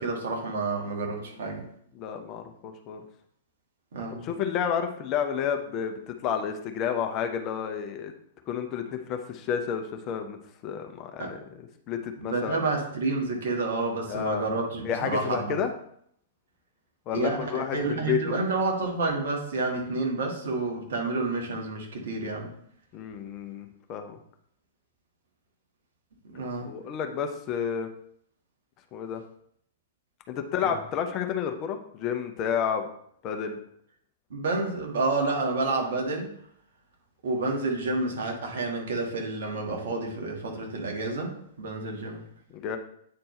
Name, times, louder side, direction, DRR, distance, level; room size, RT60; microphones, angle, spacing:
voice 1, 0.0-1.6 3.9-4.2 11.2-11.3 12.2-15.6 17.1-22.5 26.3-26.7 30.6-30.7 34.3-36.3 37.2-42.2, right 3 dB, 55° right, 1 dB, 1.6 m, -29 dB
voice 2, 1.9-3.0 4.2-8.1 8.5-10.4 10.6-11.4 11.9-12.7 14.1-14.5 14.8-15.7 17.1-18.3 22.9-24.2 26.6-27.9 28.9-29.2 30.3-32.9 33.2-33.6 42.5-42.8, left 7 dB, 30° left, 6 dB, 0.7 m, -30 dB
8.5 x 4.4 x 3.2 m, 0.67 s
figure-of-eight pair, 105°, 0 cm